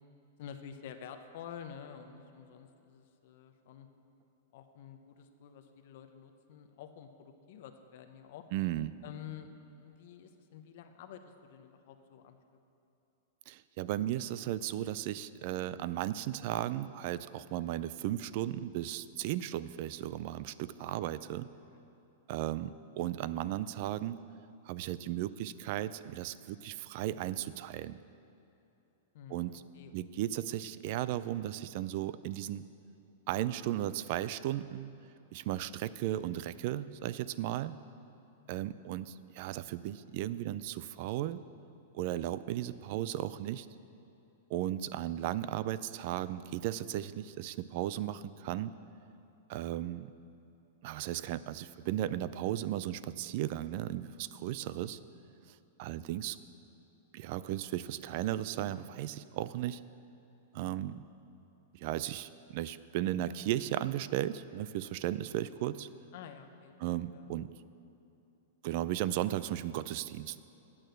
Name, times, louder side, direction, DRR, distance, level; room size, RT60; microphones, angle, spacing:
voice 1, 0.4-3.9 4.5-8.5 9.0-9.5 9.7-12.4 20.8-21.0 21.6-21.8 29.1-29.9 38.4-38.7 54.6-55.0 66.1-66.7 67.1-67.4, left 8 dB, 60° left, 7 dB, 0.7 m, -50 dB
voice 2, 8.5-8.9 13.5-21.5 22.3-22.7 23.0-24.2 24.7-28.0 29.3-29.6 29.9-32.6 33.3-34.9 35.3-37.7 38.5-41.4 41.9-43.7 44.5-48.7 49.5-50.1 50.8-55.0 55.8-56.4 57.1-59.8 60.5-61.0 61.7-65.9 66.8-67.5 68.6-70.4, right 13 dB, 50° right, 16 dB, 0.3 m, -35 dB
8.7 x 6.3 x 7.8 m, 2.9 s
hypercardioid pair, 145°, 0 cm